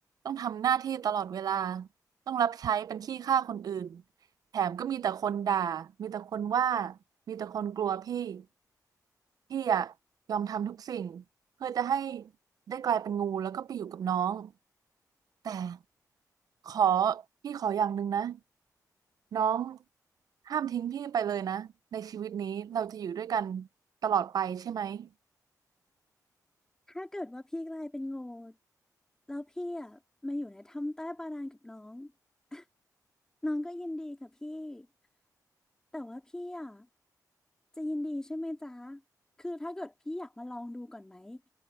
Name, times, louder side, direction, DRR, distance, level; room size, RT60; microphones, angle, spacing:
voice 1, 0.2-1.9 2.3-4.0 4.5-7.0 7.3-8.4 9.5-9.9 10.3-11.2 11.6-12.3 12.7-14.5 15.4-15.8 16.6-18.4 19.3-19.8 20.5-23.7 24.0-25.1, right 8 dB, 65° right, 0.5 m, -30 dB
voice 2, 26.9-28.6 29.3-32.1 32.5-32.6 33.4-34.9 35.9-36.9 37.8-39.0 39.4-41.4, left 1 dB, 10° left, 2.1 m, -38 dB
wide cardioid pair, 160°, 7 cm